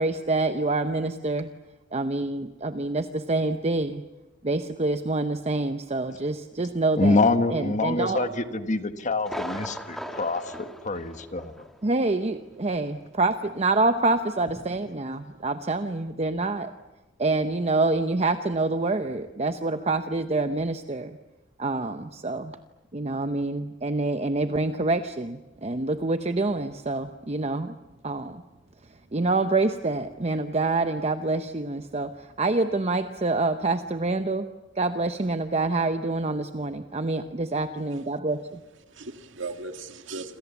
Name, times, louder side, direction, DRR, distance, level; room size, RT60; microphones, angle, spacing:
voice 1, 0.0-1.5 1.9-4.0 4.4-7.2 7.5-8.3 11.8-16.7 17.2-21.2 21.6-22.5 22.9-27.7 28.0-28.4 29.1-34.5 34.8-38.6, right 2 dB, 35° right, 8 dB, 0.8 m, -26 dB
voice 2, 7.0-11.5, left 3 dB, 40° left, 9 dB, 1.5 m, -25 dB
Thunder, 9.2-11.8 12.1-12.2 12.7-12.8, equal, ahead, 1.8 m, -38 dB
voice 3, 37.8-40.4, right 3 dB, 75° right, 7 dB, 1.9 m, -39 dB
28.5 x 27.0 x 7.1 m, 1.1 s
head